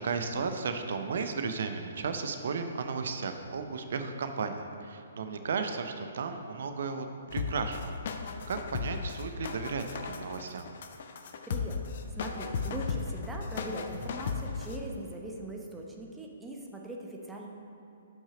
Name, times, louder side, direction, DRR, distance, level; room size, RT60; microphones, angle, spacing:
voice 1, 0.0-7.1 7.3-10.7, right 5 dB, 55° right, 7 dB, 0.5 m, -34 dB
sound 1, 7.3-14.8, left 5 dB, 50° left, 0.5 m, -36 dB
voice 2, 11.4-11.8 12.1-17.5, right 1 dB, 10° right, 0 dB, 0.8 m, -41 dB
5.6 x 5.5 x 4.9 m, 2.9 s
figure-of-eight pair, 125°, 0 cm